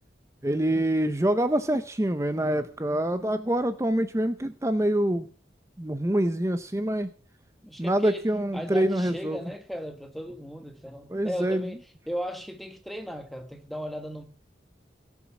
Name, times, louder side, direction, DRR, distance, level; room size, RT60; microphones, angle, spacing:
voice 1, 0.4-5.3 5.8-7.1 7.8-9.4 11.1-11.7, right 1 dB, 15° right, 0.6 m, -26 dB
voice 2, 7.6-11.8 12.1-14.2, equal, ahead, 1.3 m, -36 dB
17.5 x 7.2 x 5.9 m
head